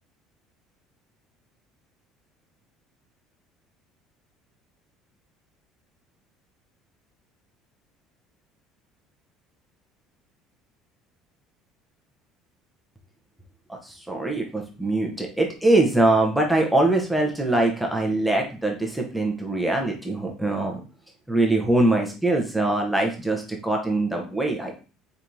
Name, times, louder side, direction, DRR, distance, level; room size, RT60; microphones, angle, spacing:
voice 1, 13.8-20.8 21.3-24.8, right 2 dB, ahead, 0 dB, 0.6 m, -23 dB
4.4 x 3.4 x 2.6 m, 0.36 s
cardioid pair, 150°, 0 cm